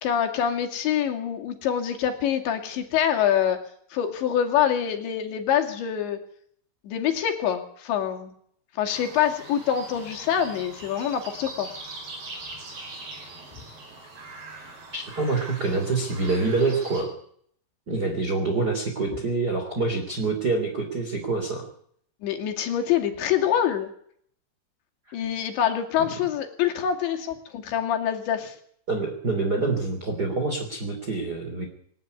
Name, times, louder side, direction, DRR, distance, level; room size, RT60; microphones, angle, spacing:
voice 1, 0.0-3.6 3.9-6.2 6.8-8.3 8.8-11.7 22.2-23.9 25.1-28.6, left 9 dB, 75° left, 5 dB, 4.6 m, -25 dB
sound 1, 8.9-17.0, right 2 dB, 60° right, 6.9 m, -41 dB
voice 2, 14.9-17.1 17.9-21.7 28.9-31.7, right 3 dB, 25° right, 3 dB, 3.3 m, -26 dB
26.5 x 12.5 x 9.6 m, 0.63 s
omnidirectional pair, 5.3 m